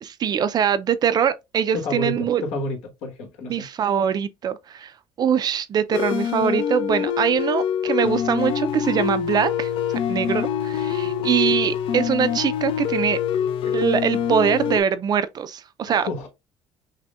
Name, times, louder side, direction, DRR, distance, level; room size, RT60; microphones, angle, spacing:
voice 1, 0.0-2.4 3.5-4.9 5.2-13.2 13.7-16.1, right 8 dB, 40° right, 0.4 m, -23 dB
voice 2, 1.7-3.7 11.0-11.5 15.8-16.3, left 2 dB, 80° left, 1.3 m, -31 dB
sound 1, 5.9-14.8, left 8 dB, 55° left, 0.4 m, -25 dB
6.0 x 2.1 x 2.3 m
cardioid pair, 125°, 11 cm